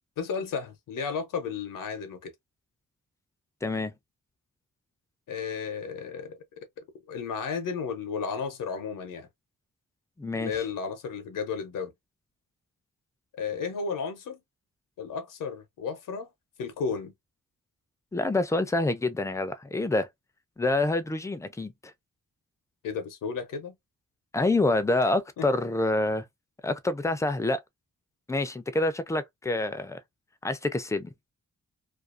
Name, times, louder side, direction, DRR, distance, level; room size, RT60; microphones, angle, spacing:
voice 1, 0.2-2.3 5.3-6.4 7.1-9.3 10.3-11.9 13.4-14.4 15.0-16.3 16.6-17.1 22.8-23.8 25.4-25.5, left 5 dB, 85° left, 0.6 m, -33 dB
voice 2, 3.6-3.9 10.2-10.5 18.1-20.1 20.6-21.7 24.3-26.2 26.6-27.6 28.3-30.0 30.4-31.1, left 2 dB, 10° left, 0.3 m, -27 dB
2.4 x 2.3 x 2.4 m
cardioid pair, 95°, 32 cm